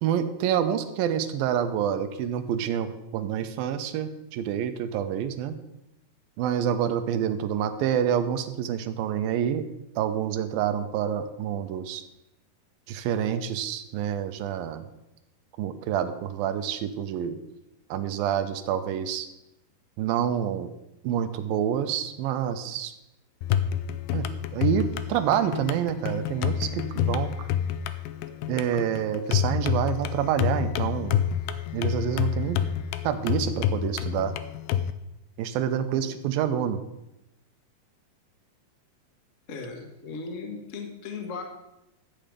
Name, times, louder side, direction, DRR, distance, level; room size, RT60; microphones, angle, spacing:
voice 1, 0.0-5.5 6.4-9.7 10.0-12.0 12.9-14.8 15.6-17.4 17.9-19.3 20.0-20.7 21.0-22.9 24.1-24.3 24.5-27.3 28.5-31.2 31.7-32.6 33.0-34.3 35.4-36.8, right 9 dB, 90° right, 10 dB, 2.6 m, -27 dB
sound 1, 23.4-34.9, left 9 dB, 85° left, 2.3 m, -28 dB
voice 2, 39.5-41.4, left 4 dB, 50° left, 3 dB, 0.9 m, -37 dB
13.5 x 8.8 x 5.1 m, 0.90 s
omnidirectional pair, 4.1 m